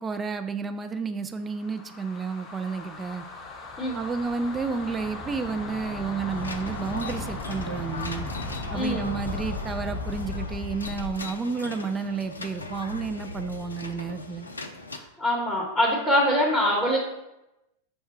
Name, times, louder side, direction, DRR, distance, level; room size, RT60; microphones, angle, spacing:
voice 1, 0.0-3.2 3.9-8.3 8.7-14.5, right 5 dB, 20° right, 8 dB, 0.3 m, -31 dB
sound 1, 1.5-11.2, left 2 dB, 25° left, 0.7 m, -36 dB
sound 2, 6.3-15.0, left 2 dB, 80° left, 0.4 m, -39 dB
voice 2, 15.2-17.0, equal, ahead, -5 dB, 1.0 m, -23 dB
5.5 x 2.2 x 4.3 m, 0.92 s
figure-of-eight pair, 90°, 0 cm